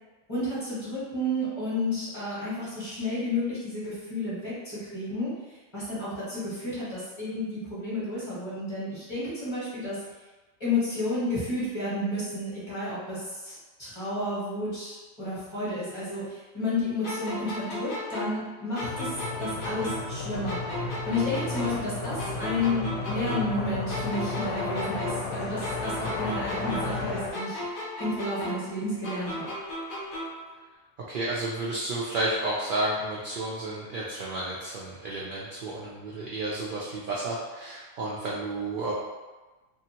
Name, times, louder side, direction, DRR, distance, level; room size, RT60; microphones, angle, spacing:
voice 1, 0.3-5.3 5.7-10.0 10.6-19.1 19.4-20.6 21.0-27.6 28.0-29.5, left 2 dB, 25° left, -10 dB, 1.0 m, -31 dB
sound 1, 17.0-20.2 20.5-23.6 23.9-27.1 27.3-30.5, left 1 dB, 50° left, 0.7 m, -36 dB
sound 2, 18.8-27.3, left 3 dB, 80° left, 1.0 m, -33 dB
voice 2, 31.1-38.9, right 2 dB, 60° right, -5 dB, 0.5 m, -31 dB
2.7 x 2.5 x 2.8 m, 1.2 s
omnidirectional pair, 1.3 m